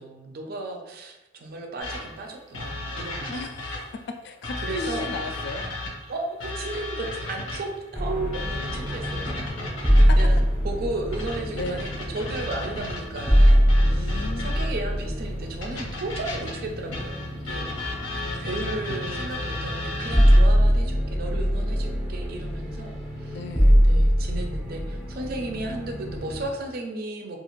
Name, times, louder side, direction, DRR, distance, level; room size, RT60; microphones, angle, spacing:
voice 1, 0.0-3.6 4.6-5.1 6.0-17.7 18.4-23.4 23.8-27.4, right 2 dB, 50° right, 2 dB, 0.4 m, -35 dB
sound 1, 1.8-4.0 4.4-7.8 8.3-10.4 11.1-14.9 15.6-20.5, left 2 dB, 90° left, 0.9 m, -34 dB
voice 2, 3.3-3.7 4.2-5.6 10.0-10.2 11.5-11.9 13.8-14.6 17.7-18.5 23.3-23.8, left 3 dB, 55° left, 6 dB, 0.3 m, -36 dB
sound 2, 7.9-26.5, equal, 5° right, 0.6 m, -23 dB
2.4 x 2.4 x 3.0 m, 0.99 s
head